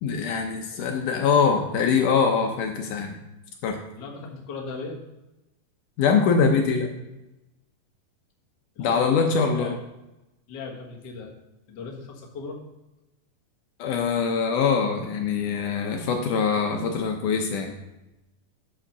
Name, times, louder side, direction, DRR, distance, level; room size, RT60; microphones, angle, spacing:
voice 1, 0.0-3.1 3.6-3.8 6.0-6.9 8.8-9.7 13.8-17.7, left 5 dB, 75° left, 3 dB, 2.1 m, -23 dB
voice 2, 0.7-1.0 3.9-5.0 8.7-9.8 10.5-11.3 11.7-12.6, left 4 dB, 50° left, -2 dB, 1.3 m, -37 dB
8.8 x 4.9 x 6.7 m, 0.97 s
omnidirectional pair, 4.1 m